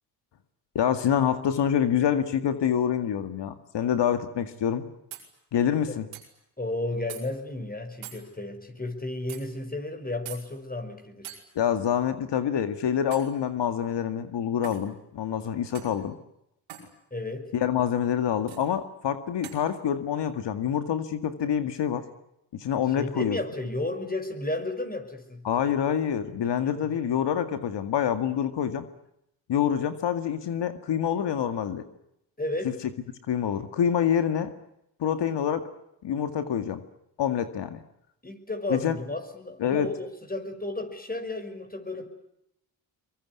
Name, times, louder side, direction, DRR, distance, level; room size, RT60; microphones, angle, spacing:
voice 1, 0.8-4.9 5.5-6.1 11.6-16.2 17.5-22.0 22.5-23.4 25.5-28.8 29.5-31.8 33.3-34.5 35.0-35.7 36.0-36.8 37.2-37.8 38.7-39.0 39.6-39.9, left 9 dB, 65° left, 9 dB, 2.1 m, -26 dB
sound 1, 5.1-5.3 6.1-6.3 7.1-7.2 8.0-8.2 9.3-9.4 10.3-10.4 11.2-11.4 13.1-13.4 14.6-14.9 15.7-16.0 16.7-16.9 18.5-18.6 19.4-19.6, right 10 dB, 85° right, 5.4 m, -42 dB
voice 2, 6.6-11.4 17.1-17.5 23.0-26.0 26.6-27.0 32.4-32.8 38.2-42.1, left 2 dB, 20° left, 6 dB, 5.8 m, -33 dB
23.5 x 22.0 x 9.7 m, 0.81 s
supercardioid pair, 60°, 46 cm